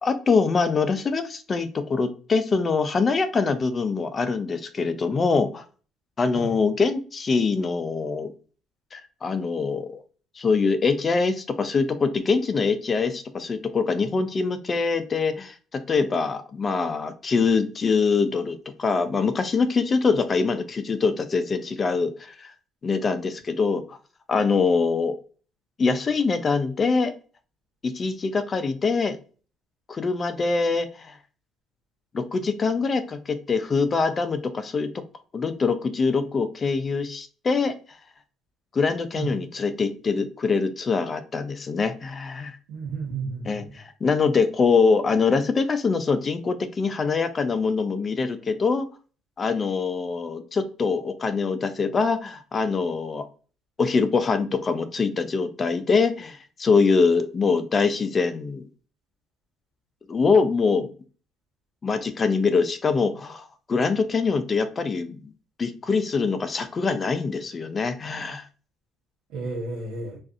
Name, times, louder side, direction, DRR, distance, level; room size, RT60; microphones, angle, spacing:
voice 1, 0.0-5.6 6.2-8.3 8.9-10.0 10.4-22.5 22.8-24.0 24.3-25.2 25.8-27.1 27.8-29.2 29.9-31.2 32.1-34.9 35.3-37.7 38.7-42.6 43.5-48.9 49.4-53.2 53.8-58.7 60.1-60.9 61.8-65.3 65.6-68.4, left 4 dB, 35° left, 10 dB, 0.3 m, -24 dB
voice 2, 42.7-43.7 69.3-70.2, right 4 dB, 80° right, -1 dB, 0.9 m, -32 dB
2.5 x 2.4 x 2.4 m, 0.38 s
cardioid pair, 100°, 0 cm